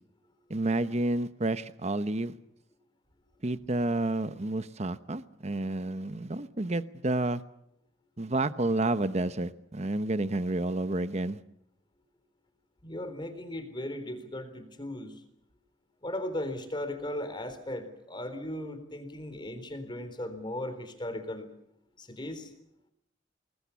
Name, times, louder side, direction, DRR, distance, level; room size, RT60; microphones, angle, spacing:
voice 1, 0.5-2.3 3.4-7.4 8.2-11.4, right 2 dB, 35° right, 13 dB, 0.9 m, -30 dB
voice 2, 12.8-15.2 16.0-21.5 22.0-22.5, left 1 dB, 25° left, 9 dB, 3.9 m, -37 dB
28.5 x 21.0 x 7.1 m, 0.76 s
head